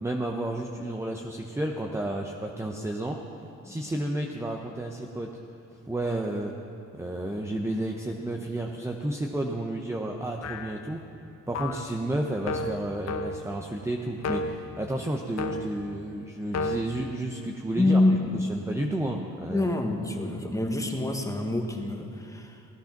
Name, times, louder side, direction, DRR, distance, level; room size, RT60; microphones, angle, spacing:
voice 1, 0.0-3.2 3.6-5.3 5.9-6.5 6.9-11.0 11.5-18.0 18.5-19.7, right 1 dB, 10° right, 1 dB, 0.9 m, -31 dB
sound 1, 10.4-10.9 11.5-11.9 12.5-13.6 14.2-14.7 15.4-15.9 16.5-16.8, left 3 dB, 60° left, 1.0 m, -32 dB
voice 2, 17.7-18.2 19.5-22.7, left 2 dB, 10° left, 2 dB, 1.6 m, -26 dB
16.5 x 10.5 x 5.9 m, 2.6 s
cardioid pair, 90°, 30 cm